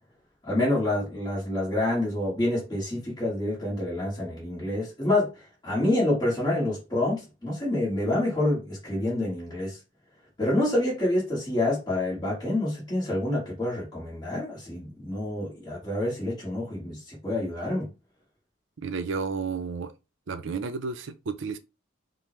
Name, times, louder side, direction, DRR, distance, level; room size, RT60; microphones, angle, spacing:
voice 1, 0.4-9.8 10.4-17.9, left 1 dB, 20° left, 1.4 m, -27 dB
voice 2, 18.8-19.9 20.3-21.6, right 4 dB, 70° right, 0.5 m, -32 dB
5.2 x 2.1 x 3.0 m
head